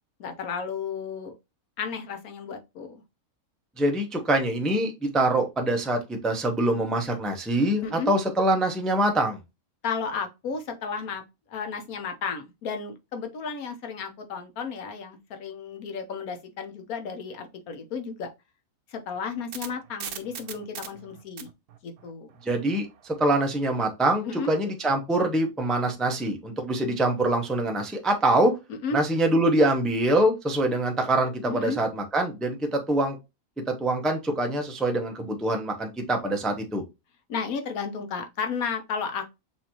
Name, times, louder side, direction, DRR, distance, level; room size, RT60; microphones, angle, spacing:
voice 1, 0.2-1.3 1.8-3.0 7.8-8.1 9.8-11.2 11.5-18.3 18.9-21.5 21.8-22.3 24.3-24.5 28.7-29.0 31.5-31.8 37.3-39.4, left 5 dB, 80° left, 1.4 m, -33 dB
voice 2, 3.8-9.4 22.5-28.5 28.9-33.2 33.7-36.8, right 1 dB, ahead, 0.5 m, -24 dB
sound 1, 19.1-23.4, right 9 dB, 85° right, 1.2 m, -41 dB
5.9 x 2.7 x 2.9 m
omnidirectional pair, 1.5 m